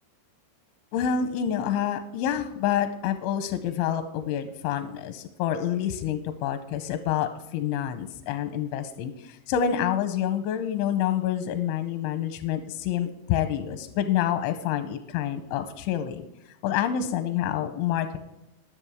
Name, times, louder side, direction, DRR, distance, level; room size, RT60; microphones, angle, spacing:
voice 1, 0.9-16.2 16.6-18.2, left 9 dB, 85° left, 9 dB, 3.0 m, -27 dB
21.0 x 7.1 x 3.5 m, 0.90 s
omnidirectional pair, 5.4 m